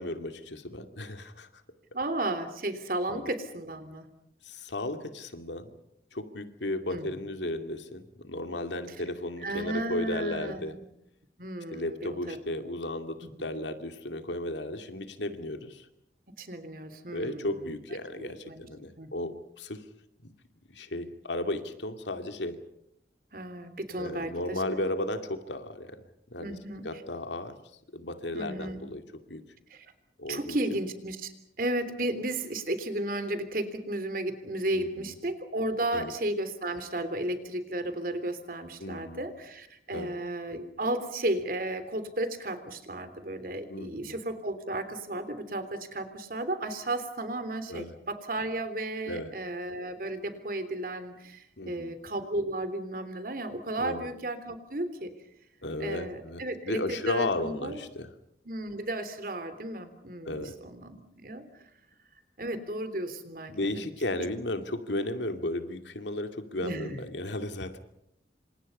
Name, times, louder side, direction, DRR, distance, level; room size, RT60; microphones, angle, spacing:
voice 1, 0.0-1.5 3.1-3.3 4.4-5.7 6.1-10.8 11.7-15.9 17.1-19.8 20.2-20.3 20.7-22.6 24.0-26.0 26.3-26.5 26.8-27.5 27.9-29.4 30.2-30.6 34.7-35.1 35.9-36.1 38.8-39.2 39.9-40.1 43.7-44.2 47.7-48.0 49.1-49.3 51.6-52.0 53.8-54.1 55.6-58.1 60.2-60.6 63.5-67.8, left 1 dB, 85° left, 7 dB, 2.4 m, -34 dB
voice 2, 1.9-4.0 6.9-7.2 9.4-10.6 11.4-12.4 13.2-13.3 16.4-17.6 18.2-18.7 19.0-19.1 23.3-24.8 26.4-26.8 28.3-28.9 29.7-29.9 30.3-31.3 31.6-55.1 55.8-57.8 58.4-61.4 62.4-63.8 66.6-67.0, right 1 dB, 50° right, 11 dB, 3.3 m, -34 dB
28.5 x 26.5 x 5.5 m, 0.77 s
head